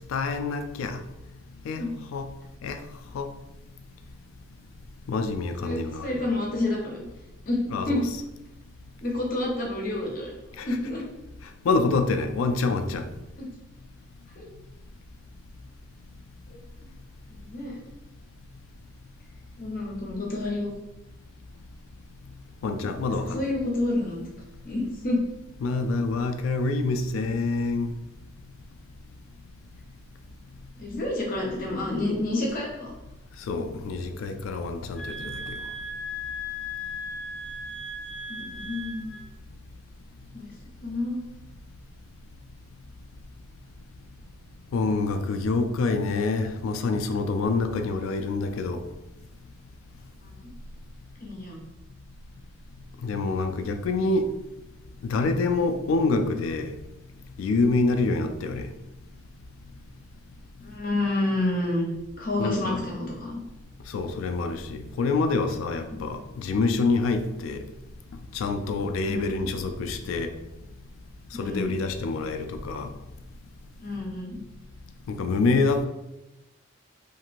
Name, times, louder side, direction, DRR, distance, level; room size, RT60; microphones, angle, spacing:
voice 1, 0.1-1.0 1.6-2.3 2.6-2.8 3.1-3.3 5.1-6.2 7.7-8.2 10.6-10.8 11.6-13.1 22.6-23.4 25.6-27.9 33.5-35.3 44.7-48.8 53.0-54.3 55.0-56.7 57.4-58.7 62.4-62.8 63.9-67.6 68.3-70.3 71.4-72.9 75.1-75.9, left 3 dB, 90° left, 0.3 m, -26 dB
voice 2, 5.6-7.0 7.5-8.0 9.0-10.3 10.6-11.0 13.4-13.5 14.4-14.5 16.5-16.6 17.3-17.8 19.6-20.7 23.3-24.2 24.6-25.2 30.8-32.9 38.3-39.1 40.3-40.5 40.8-41.2 50.2-50.4 51.2-51.6 60.6-61.9 62.1-63.4 65.9-66.0 69.0-69.8 71.3-71.8 73.8-74.4, left 2 dB, 45° left, 0.7 m, -29 dB
sound 1, 34.9-39.3, left 1 dB, 5° left, 0.4 m, -36 dB
2.9 x 2.6 x 2.5 m
head